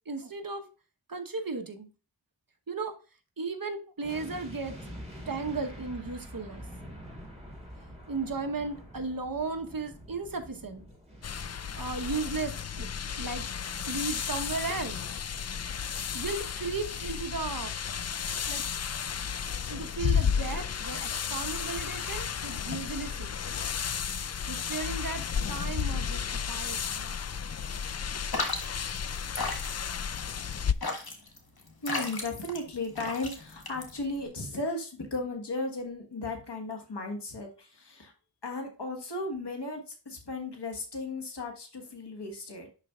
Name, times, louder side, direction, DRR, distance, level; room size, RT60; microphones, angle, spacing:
voice 1, 0.1-0.6 1.1-1.9 2.7-2.9 3.4-4.8 5.3-6.6 8.1-10.8 11.8-13.4 13.9-15.0 16.1-17.7 18.5-18.6 19.7-23.3 24.5-27.2, right 3 dB, 55° right, 5 dB, 1.1 m, -35 dB
sound 1, 4.0-17.2 17.4-17.6, equal, 15° right, 3.1 m, -48 dB
sound 2, 11.2-30.7, left 7 dB, 40° left, 0.4 m, -33 dB
sound 3, 28.3-34.3, left 3 dB, 65° left, 1.5 m, -35 dB
voice 2, 31.8-38.1 38.4-42.7, left 2 dB, 90° left, 2 dB, 1.5 m, -35 dB
11.0 x 4.2 x 2.4 m, 0.34 s
wide cardioid pair, 50°, 40 cm